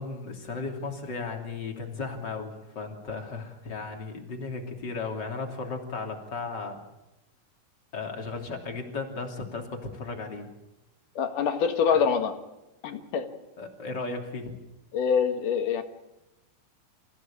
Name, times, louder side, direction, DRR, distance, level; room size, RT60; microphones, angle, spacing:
voice 1, 0.0-6.8 7.9-10.5 11.9-12.0 13.6-14.5, left 4 dB, 30° left, 3 dB, 3.4 m, -35 dB
voice 2, 11.2-12.3 12.8-13.3 14.9-15.8, left 6 dB, 70° left, 7 dB, 3.1 m, -25 dB
27.0 x 16.0 x 8.7 m, 0.97 s
omnidirectional pair, 4.0 m